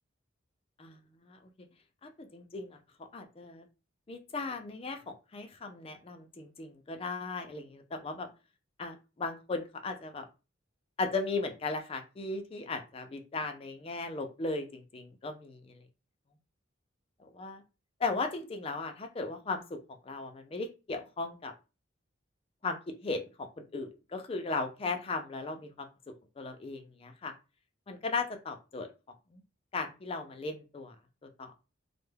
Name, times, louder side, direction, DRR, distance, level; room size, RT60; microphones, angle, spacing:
voice 1, 2.0-2.8 3.1-3.6 4.1-8.3 8.8-10.3 11.0-15.7 17.2-17.6 18.0-19.8 20.1-21.5 22.6-23.5 23.7-25.9 26.4-27.3 27.9-28.9 29.3-29.4 29.7-30.9 31.4-31.6, left 3 dB, 30° left, 6 dB, 0.3 m, -37 dB
2.2 x 2.0 x 3.1 m, 0.30 s
head